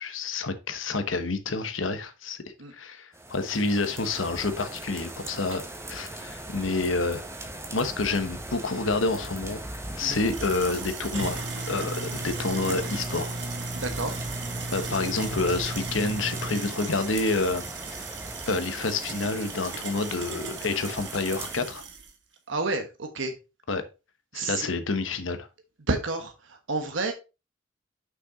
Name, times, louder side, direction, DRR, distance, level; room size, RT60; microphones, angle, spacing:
voice 1, 0.0-2.4 2.7-7.2 7.7-9.6 10.0-13.4 14.7-17.6 17.9-18.1 18.5-21.9 23.7-23.8 24.3-25.5, left 3 dB, 90° left, 1.1 m, -28 dB
sound 1, 3.1-21.5, right 1 dB, 15° right, 1.3 m, -39 dB
sound 2, 10.0-22.0, right 3 dB, 65° right, 1.4 m, -36 dB
voice 2, 13.7-14.2 22.5-23.3 24.3-24.7 25.9-27.1, right 3 dB, 80° right, 1.2 m, -30 dB
6.2 x 5.9 x 4.0 m
head